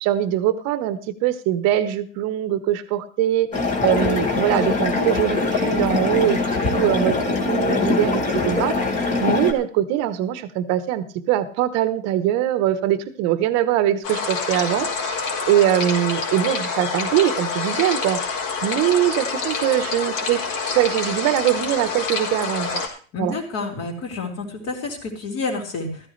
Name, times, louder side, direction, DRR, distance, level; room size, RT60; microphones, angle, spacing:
voice 1, 0.0-3.5 3.8-8.7 9.2-18.2 18.6-20.4 20.7-22.8 23.2-23.3, right 12 dB, 40° right, 11 dB, 1.3 m, -22 dB
sound 1, 3.5-9.5, left 3 dB, 20° left, 2.2 m, -22 dB
sound 2, 14.0-22.9, left 4 dB, 65° left, 4.4 m, -27 dB
voice 2, 23.1-26.0, left 3 dB, 35° left, 1 dB, 4.1 m, -29 dB
14.5 x 14.0 x 3.4 m, 0.41 s
supercardioid pair, 145°, 39 cm